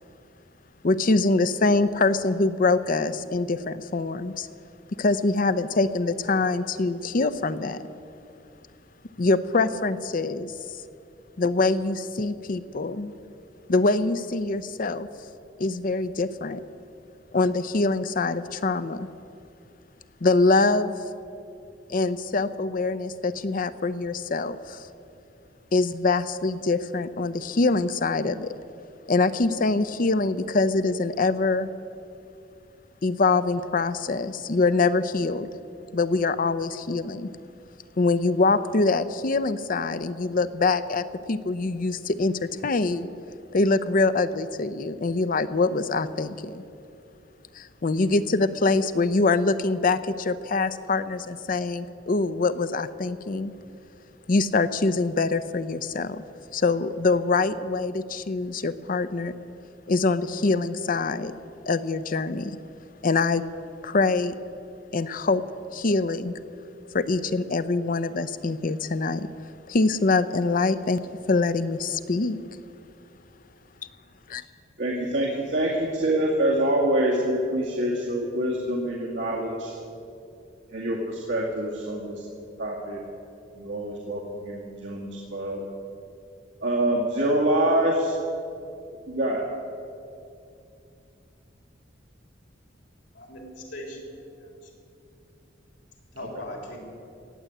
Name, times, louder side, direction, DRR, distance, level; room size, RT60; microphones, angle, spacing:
voice 1, 0.8-4.5 5.0-7.8 9.2-10.5 11.4-13.1 13.7-15.1 15.6-16.6 17.3-19.1 20.2-20.9 21.9-24.8 25.7-28.5 29.1-31.7 33.0-35.5 35.9-37.3 38.0-43.1 43.5-46.6 47.5-53.5 54.3-56.2 56.5-59.3 59.9-61.3 61.7-62.6 63.0-63.4 63.8-64.3 64.9-65.4 65.7-66.3 66.9-69.3 69.7-72.4 74.3-74.4, left 3 dB, 45° left, 13 dB, 0.6 m, -24 dB
voice 2, 74.8-79.7 80.7-82.2 82.6-83.0 83.6-85.6 86.6-88.1 89.1-89.4, right 1 dB, 70° right, -4 dB, 2.0 m, -25 dB
voice 3, 93.1-94.7 96.1-96.8, left 1 dB, 70° left, -2 dB, 3.7 m, -40 dB
17.5 x 7.8 x 10.0 m, 2.6 s
head